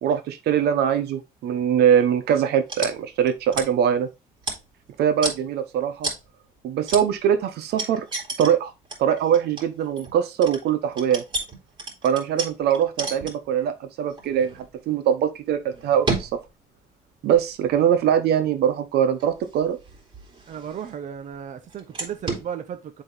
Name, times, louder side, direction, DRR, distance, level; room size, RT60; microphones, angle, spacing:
voice 1, 0.0-4.1 5.0-6.1 6.6-8.0 8.4-8.7 9.0-11.2 12.0-14.5 14.9-16.3 17.2-19.8, right 9 dB, 75° right, 1.1 m, -22 dB
sound 1, 2.7-2.9 3.2-3.7 4.4-4.9 5.2-5.4 6.0-6.3 6.9-7.0 7.8-8.5 8.8-13.6 14.1-14.7 15.6-16.4 17.3-18.2 19.2-21.1 21.7-22.5, right 3 dB, 30° right, 3.6 m, -32 dB
voice 2, 20.5-23.0, right 8 dB, 50° right, 0.9 m, -35 dB
7.8 x 4.0 x 3.9 m
cardioid pair, 110°, 17 cm